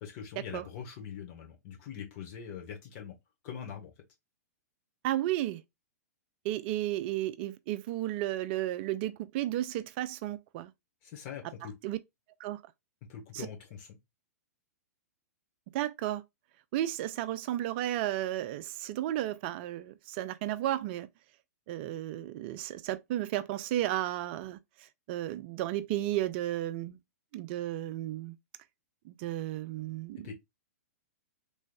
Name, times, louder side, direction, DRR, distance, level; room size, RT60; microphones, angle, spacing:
voice 1, 0.0-3.1 3.4-3.9 11.0-11.8 13.1-14.0 30.2-30.3, left 8 dB, 40° left, 1.4 m, -43 dB
voice 2, 5.0-5.6 6.4-10.7 11.8-12.0 12.4-12.6 13.3-13.5 15.7-16.2 16.7-21.1 21.7-24.6 25.1-27.0 27.3-28.4 29.1-30.3, right 14 dB, 40° right, 0.4 m, -33 dB
3.4 x 3.1 x 2.2 m
figure-of-eight pair, 105°, 9 cm